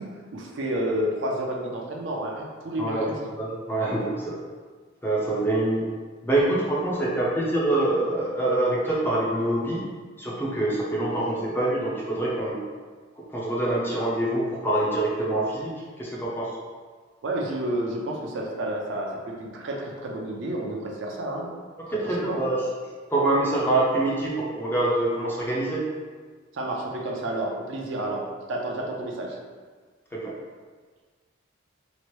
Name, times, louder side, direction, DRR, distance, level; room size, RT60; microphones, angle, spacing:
voice 1, 0.0-3.2 17.2-21.6 21.9-22.4 26.5-29.4, right 1 dB, 65° right, -1 dB, 0.5 m, -30 dB
voice 2, 3.4-4.4 5.0-5.9 6.2-9.8 10.2-12.6 13.2-15.7 16.0-16.5 21.9-22.6 23.1-25.8 30.1-30.3, right 2 dB, 10° left, -5 dB, 0.5 m, -25 dB
2.9 x 2.5 x 3.0 m, 1.5 s
head